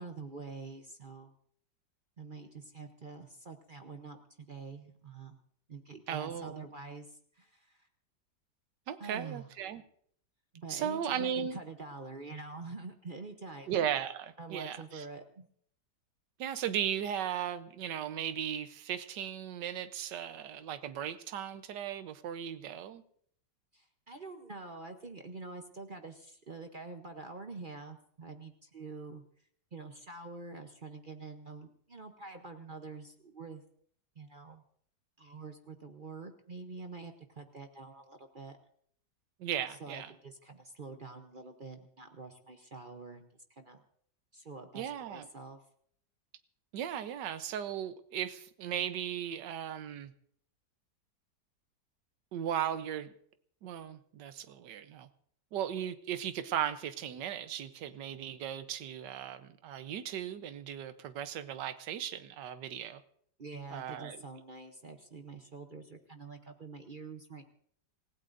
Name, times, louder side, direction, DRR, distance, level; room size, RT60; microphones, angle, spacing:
voice 1, 0.0-1.3 2.2-4.2 4.5-5.4 5.7-7.9 9.0-9.5 10.5-13.7 14.4-15.5 23.7-29.2 29.7-33.6 34.2-34.6 35.2-38.6 39.8-43.8 44.3-45.6 63.4-67.4, right 3 dB, 40° right, 6 dB, 0.7 m, -46 dB
voice 2, 6.1-6.7 8.9-9.8 10.7-11.6 13.7-15.0 16.4-23.0 39.4-40.1 44.7-45.3 46.7-50.1 52.3-53.1 53.6-55.1 55.5-63.0 63.7-64.2, right 9 dB, 70° right, 11 dB, 1.4 m, -37 dB
27.5 x 16.0 x 2.6 m, 0.63 s
omnidirectional pair, 2.0 m